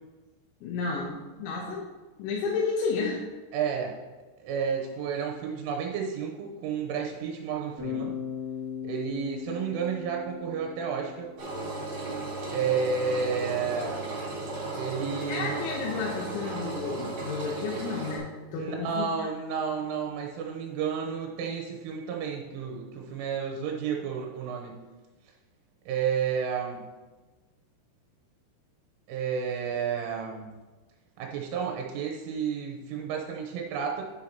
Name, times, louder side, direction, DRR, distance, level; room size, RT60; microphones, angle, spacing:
voice 1, 0.6-1.9 2.2-3.2 15.3-19.1, left 4 dB, 75° left, -2 dB, 3.0 m, -32 dB
voice 2, 3.5-4.0 4.4-8.1 8.8-11.3 12.5-14.0 14.8-15.6 18.6-24.8 25.9-26.8 29.1-30.5 31.2-34.0, right 6 dB, 85° right, 0 dB, 3.3 m, -31 dB
Bass guitar, 7.8-11.8, left 8 dB, 70° right, 0.8 m, -38 dB
Engine, 11.4-18.2, right 3 dB, 55° right, 1.4 m, -35 dB
10.0 x 7.8 x 2.9 m, 1.2 s
omnidirectional pair, 5.8 m